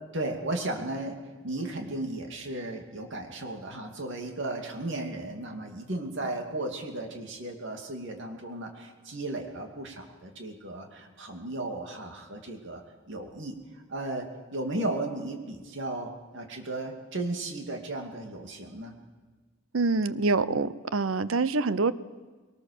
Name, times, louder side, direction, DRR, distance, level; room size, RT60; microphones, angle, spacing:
voice 1, 0.1-1.2 1.4-12.8 13.1-13.5 13.9-14.3 14.5-18.9, right 2 dB, 65° right, 3 dB, 2.7 m, -35 dB
voice 2, 19.7-21.9, right 3 dB, 85° right, 16 dB, 0.8 m, -25 dB
21.5 x 19.0 x 6.8 m, 1.4 s
head